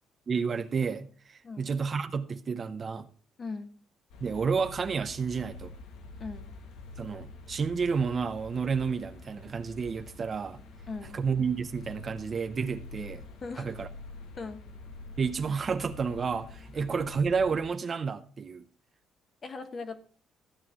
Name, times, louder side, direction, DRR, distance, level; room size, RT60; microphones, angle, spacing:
voice 1, 0.3-3.1 4.2-5.7 7.0-10.6 11.1-13.2 13.6-13.9 15.2-18.7, right 5 dB, 30° right, 0.6 m, -30 dB
voice 2, 3.4-3.7 6.2-6.5 10.9-11.2 13.4-13.7 14.4-14.6 16.7-16.9 19.4-20.0, left 4 dB, 30° left, 1.3 m, -39 dB
sound 1, 4.1-17.6, left 3 dB, 85° left, 1.8 m, -46 dB
14.5 x 9.1 x 3.6 m
cardioid pair, 145°, 0 cm